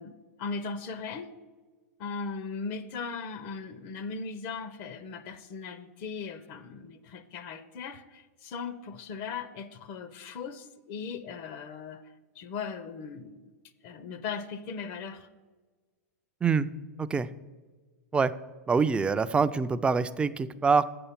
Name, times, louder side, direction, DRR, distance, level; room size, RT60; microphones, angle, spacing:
voice 1, 0.0-1.3 2.0-12.0 12.4-13.5 13.8-15.3, left 5 dB, 45° left, 0.6 m, -38 dB
voice 2, 18.7-20.8, right 5 dB, 10° right, 0.3 m, -25 dB
7.9 x 6.9 x 5.8 m
hypercardioid pair, 115°, 9 cm